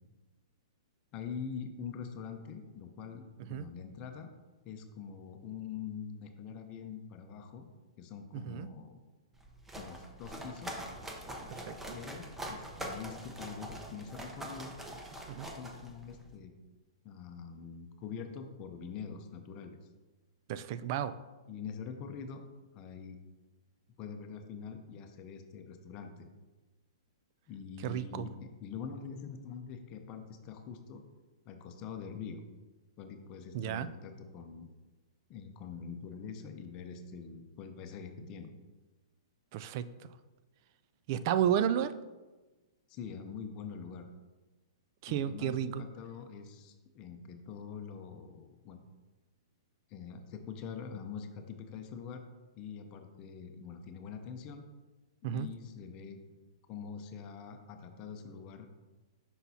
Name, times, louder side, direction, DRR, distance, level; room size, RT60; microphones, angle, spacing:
voice 1, 1.1-4.3 4.6-7.7 8.0-9.0 9.7-10.8 11.9-14.7 15.5-16.5 17.0-19.8 21.5-22.4 22.7-23.2 24.0-26.3 27.5-31.0 31.4-32.4 33.0-34.7 35.3-38.5 42.9-44.1 45.1-48.8 49.9-52.2 52.6-54.6 55.2-56.2 56.7-58.7, left 6 dB, 35° left, 6 dB, 0.6 m, -44 dB
voice 2, 8.3-8.7 11.5-12.0 15.3-15.5 20.5-21.1 27.8-28.3 33.5-33.9 39.5-39.9 41.1-41.9 45.0-45.8 55.2-55.5, right 9 dB, 45° right, 13 dB, 0.3 m, -32 dB
sound 1, 9.3-16.3, right 1 dB, 10° right, 0.7 m, -44 dB
6.0 x 5.6 x 2.8 m, 1.2 s
hypercardioid pair, 140°, 3 cm